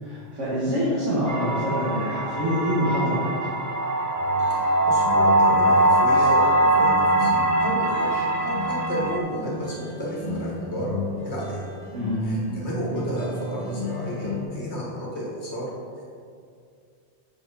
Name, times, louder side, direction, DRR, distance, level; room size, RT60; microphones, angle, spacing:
voice 1, 0.0-3.4 11.9-12.3, equal, 90° right, -8 dB, 1.7 m, -25 dB
sound 1, 1.3-9.2, right 1 dB, 25° right, 0.4 m, -22 dB
sound 2, 4.1-14.4, left 2 dB, 40° right, 2.1 m, -33 dB
voice 2, 4.5-11.0 11.2-11.6 12.2-15.7 16.0-16.1, equal, 65° left, -5 dB, 1.7 m, -32 dB
7.4 x 4.3 x 5.3 m, 2.3 s
omnidirectional pair, 1.2 m